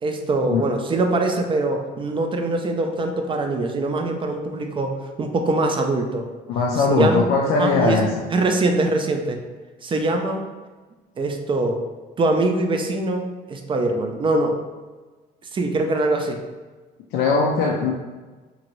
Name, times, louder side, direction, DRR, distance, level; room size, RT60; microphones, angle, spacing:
voice 1, 0.0-6.2 6.9-7.2 7.6-8.0 8.3-9.4 9.8-10.4 11.2-11.8 12.2-14.6 15.5-16.4, right 2 dB, 30° right, 4 dB, 0.4 m, -23 dB
voice 2, 6.5-8.2 17.1-17.9, left 4 dB, 85° left, -1 dB, 0.4 m, -20 dB
2.9 x 2.5 x 3.0 m, 1.3 s
cardioid pair, 110°, 17 cm